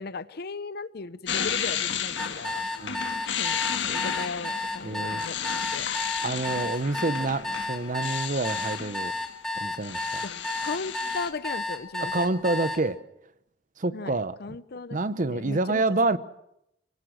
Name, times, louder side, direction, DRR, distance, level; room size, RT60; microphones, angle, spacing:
voice 1, 0.0-2.7 3.4-5.4 5.7-5.9 6.5-6.9 10.2-10.3 10.6-12.3 13.9-15.0 15.2-15.8 16.1-16.2, left 4 dB, 60° left, 16 dB, 0.8 m, -37 dB
sound 1, 1.3-9.2 9.6-11.3, left 8 dB, 85° left, 1.7 m, -33 dB
sound 2, 2.2-12.8, left 2 dB, 5° left, 2.3 m, -32 dB
voice 2, 4.8-5.2 6.2-9.1 9.6-10.2 12.1-13.0 13.8-14.3 14.9-16.2, right 2 dB, 45° right, 14 dB, 0.8 m, -27 dB
25.0 x 18.0 x 6.2 m, 0.80 s
head